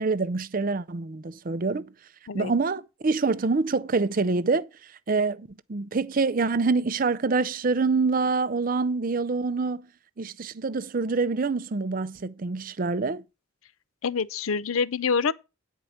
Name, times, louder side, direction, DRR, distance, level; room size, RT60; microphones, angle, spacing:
voice 1, 0.0-1.9 2.3-9.9 10.2-13.2, right 4 dB, 40° right, 0.5 m, -26 dB
voice 2, 14.0-15.3, left 5 dB, 75° left, 0.5 m, -26 dB
10.0 x 4.6 x 7.1 m
head